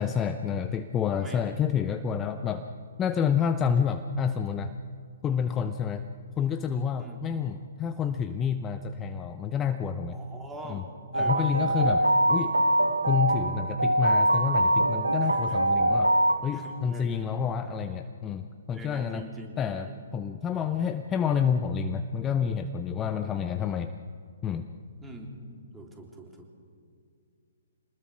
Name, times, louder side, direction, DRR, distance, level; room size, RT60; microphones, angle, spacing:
voice 1, 0.0-2.7 3.0-4.7 5.2-6.0 6.4-10.2 10.7-10.8 11.2-12.5 13.1-16.1 16.4-19.3 19.6-23.9 24.4-24.7, left 7 dB, 20° left, 8 dB, 0.7 m, -29 dB
voice 2, 1.1-1.5 7.0-7.2 10.1-11.5 11.8-12.1 15.2-15.7 16.5-17.5 18.7-20.0 20.5-20.6 25.0-25.4 25.7-26.5, right 1 dB, 10° right, 1 dB, 3.4 m, -44 dB
sound 1, 11.1-16.3, right 1 dB, 90° right, 1.4 m, -23 dB
25.5 x 20.0 x 6.1 m, 2.3 s
figure-of-eight pair, 125°, 0 cm